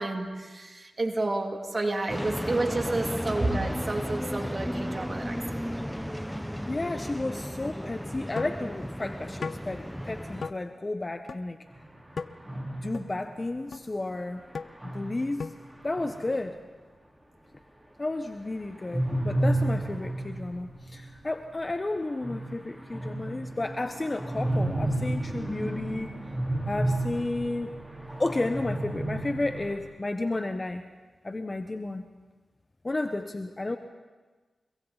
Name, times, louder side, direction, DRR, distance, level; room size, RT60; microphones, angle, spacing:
voice 1, 0.0-5.6, right 2 dB, 45° right, 3 dB, 2.8 m, -30 dB
sound 1, 2.1-10.5, equal, ahead, 1.0 m, -34 dB
voice 2, 6.7-11.6 12.8-14.4 14.9-15.5 15.8-16.6 18.0-26.1 26.7-27.7 28.2-30.8 31.2-32.0 32.8-33.8, left 2 dB, 35° left, 7 dB, 1.2 m, -32 dB
sound 2, 8.4-8.6 9.4-9.6 10.4-10.6 11.3-11.4 12.2-12.3 12.9-13.0 13.7-13.8 14.5-14.7 15.4-15.6, left 4 dB, 70° left, 0.7 m, -34 dB
sound 3, 11.7-13.5 14.7-16.5 18.7-21.1 21.3-21.4 21.7-21.8 22.0-29.8, right 1 dB, 15° right, 4.2 m, -32 dB
30.0 x 23.0 x 4.2 m, 1.3 s
cardioid pair, 45°, 0 cm